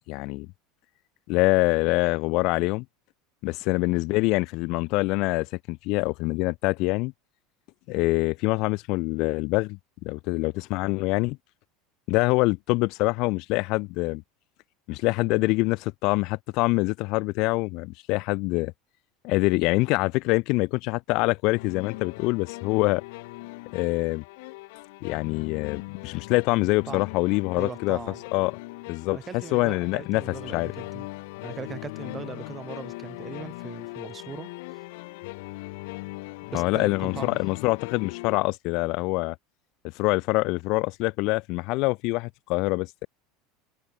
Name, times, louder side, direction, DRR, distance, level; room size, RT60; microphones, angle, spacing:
voice 1, 0.1-0.5 1.3-2.8 3.4-7.1 7.9-9.8 10.0-11.4 12.1-14.2 14.9-18.7 19.2-23.0 23.7-24.2 25.0-28.0 28.3-28.6 28.9-29.2 29.5-30.2 30.5-30.7 36.5-39.4 39.9-43.1, left 24 dB, 50° left, 1.2 m, -25 dB
sound 1, 21.5-38.4, left 24 dB, 70° left, 6.8 m, -40 dB
voice 2, 27.5-28.2 29.1-31.1 31.4-34.8 36.5-37.5, right 6 dB, 20° right, 5.1 m, -40 dB
supercardioid pair, 155°, 0 cm